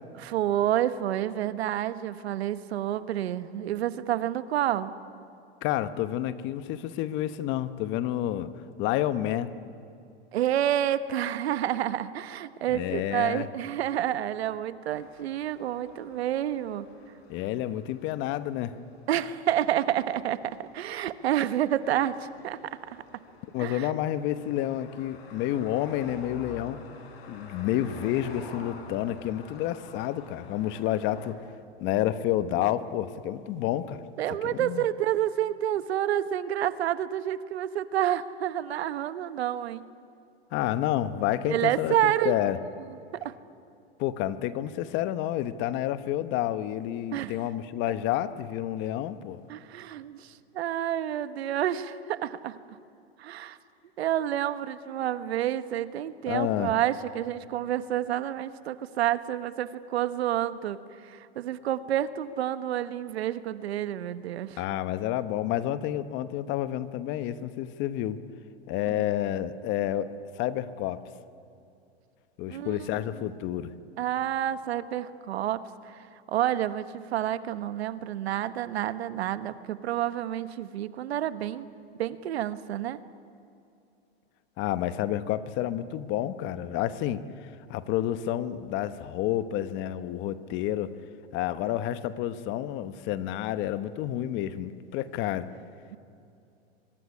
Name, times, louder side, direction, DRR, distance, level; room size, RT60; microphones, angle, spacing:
voice 1, 0.2-4.9 10.3-16.9 19.1-23.0 23.6-23.9 34.2-39.8 41.5-42.4 43.2-43.3 47.1-47.4 49.5-52.6 53.2-53.6 54.0-64.6 68.9-69.1 72.5-73.3 74.0-81.6 82.0-83.0 95.9-96.0, right 11 dB, 75° right, 12 dB, 1.4 m, -29 dB
voice 2, 5.6-8.5 8.8-9.5 12.7-13.5 17.3-18.8 23.5-26.8 27.3-31.4 31.8-34.0 34.4-34.8 40.5-42.6 44.0-49.4 56.3-56.7 64.6-68.2 68.7-71.0 72.4-73.7 84.6-90.9 91.3-95.5, left 12 dB, 35° left, 13 dB, 1.1 m, -29 dB
sound 1, 14.9-31.3, left 4 dB, 65° left, 4.6 m, -49 dB
23.5 x 23.5 x 9.9 m, 2.6 s
supercardioid pair, 140°, 32 cm